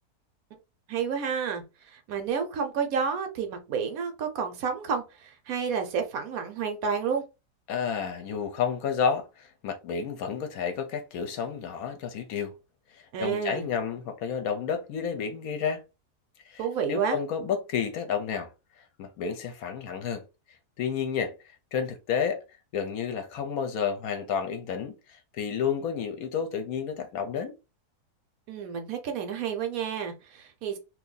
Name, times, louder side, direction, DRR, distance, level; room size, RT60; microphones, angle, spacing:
voice 1, 0.9-7.2 13.1-13.7 16.6-17.2 28.5-30.8, right 6 dB, 70° right, 1.0 m, -30 dB
voice 2, 7.7-12.5 13.0-15.8 16.5-18.5 19.0-20.2 20.8-21.3 21.7-22.4 22.7-27.5, left 7 dB, 70° left, 1.0 m, -30 dB
2.7 x 2.6 x 3.7 m
omnidirectional pair, 1.7 m